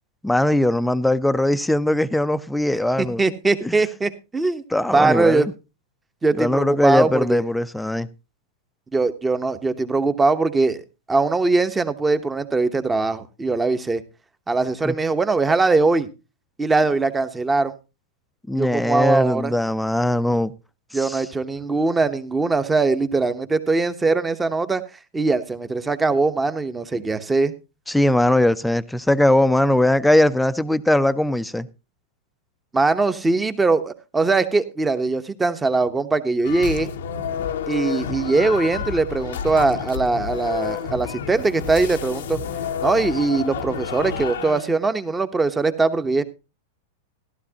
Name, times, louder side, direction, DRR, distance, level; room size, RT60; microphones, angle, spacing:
voice 1, 0.2-3.2 3.6-3.8 4.7-5.5 6.4-8.1 14.8-14.9 18.5-20.5 20.9-21.2 27.9-31.7, left 1 dB, 5° left, 0.6 m, -20 dB
voice 2, 3.2-4.6 4.9-5.5 6.2-7.4 8.9-14.0 14.5-16.1 16.6-17.7 18.5-19.5 20.9-24.8 25.1-27.5 32.7-36.9 37.7-42.4 42.8-46.2, right 3 dB, 15° right, 1.0 m, -21 dB
sound 1, 36.4-44.7, left 8 dB, 75° left, 0.8 m, -30 dB
14.5 x 12.0 x 2.9 m
hypercardioid pair, 105°, 0 cm